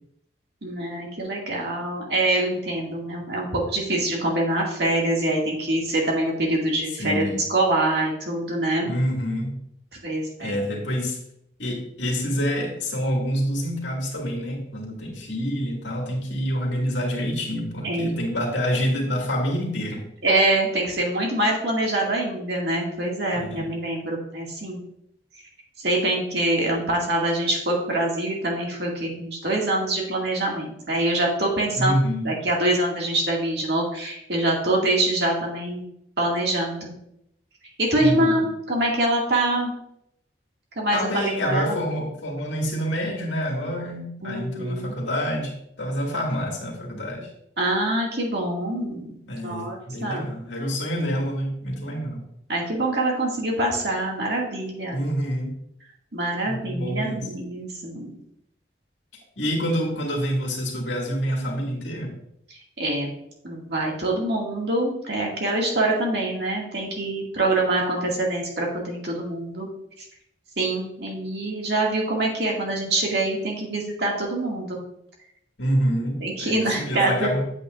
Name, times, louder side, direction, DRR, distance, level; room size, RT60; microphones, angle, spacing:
voice 1, 0.6-8.9 10.0-10.6 17.8-18.2 20.2-24.8 25.8-32.0 32.2-35.8 36.2-36.8 37.8-39.7 40.8-41.8 44.2-45.0 47.6-50.3 52.5-55.0 56.1-58.2 62.8-63.1 63.4-69.7 70.0-70.1 70.6-74.9 76.2-77.3, right 1 dB, 60° right, -2 dB, 2.2 m, -25 dB
voice 2, 7.0-7.4 8.8-9.6 10.4-11.2 11.6-20.0 23.3-23.7 31.8-32.3 38.0-38.5 40.9-47.3 49.3-52.2 54.9-55.5 56.4-57.3 59.4-62.1 75.6-77.4, equal, 80° left, -1 dB, 2.1 m, -27 dB
8.6 x 8.0 x 2.5 m, 0.75 s
head